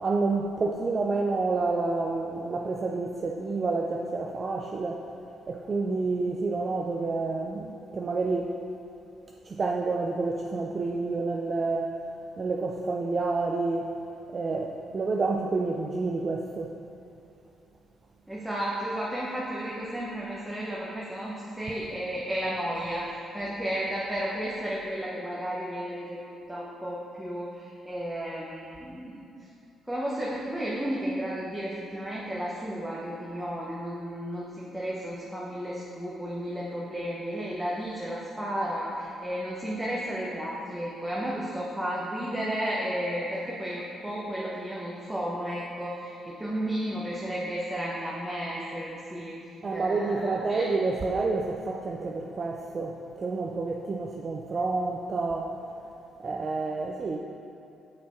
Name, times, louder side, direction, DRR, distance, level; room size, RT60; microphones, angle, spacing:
voice 1, 0.0-5.0 5.5-8.5 9.5-12.0 12.4-13.9 14.3-16.8 49.6-55.5 56.2-57.2, right 3 dB, 40° right, 0 dB, 0.4 m, -29 dB
voice 2, 18.3-23.1 23.3-29.2 29.9-49.3 49.7-50.6, equal, 5° right, -6 dB, 0.8 m, -33 dB
6.1 x 5.7 x 3.0 m, 2.8 s
cardioid pair, 90°, 0 cm